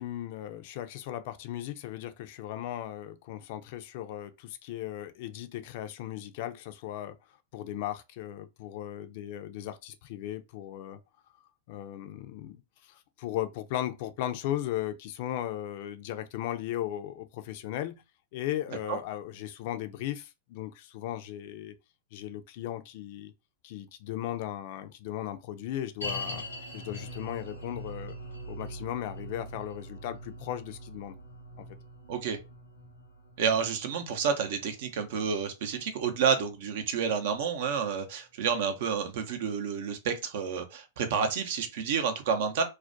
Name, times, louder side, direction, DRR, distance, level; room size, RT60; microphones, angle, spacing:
voice 1, 0.0-7.1 7.5-11.0 11.7-18.0 18.3-21.7 22.1-23.3 23.6-26.4 26.7-28.1 28.5-31.2, left 12 dB, 55° left, 0.3 m, -37 dB
sound 1, 26.0-37.3 37.6-37.7 38.3-38.4, equal, 85° left, 0.7 m, -43 dB
voice 2, 33.4-42.6, right 6 dB, 60° right, 0.5 m, -29 dB
2.3 x 2.1 x 2.5 m
hypercardioid pair, 100°, 0 cm